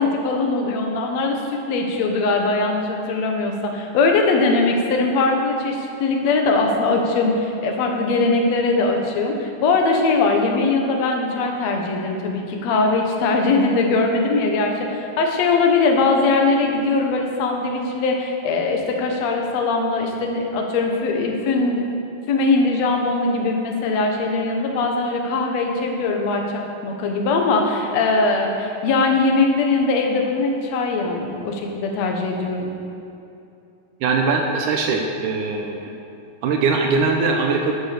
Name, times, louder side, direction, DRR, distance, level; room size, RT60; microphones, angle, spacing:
voice 1, 0.0-1.4 1.7-21.8 22.3-26.4 26.8-32.7, left 3 dB, 60° left, 2 dB, 2.1 m, -21 dB
voice 2, 34.0-35.9 36.4-37.7, right 4 dB, 75° right, 2 dB, 2.1 m, -21 dB
11.0 x 8.2 x 6.8 m, 2.7 s
omnidirectional pair, 4.1 m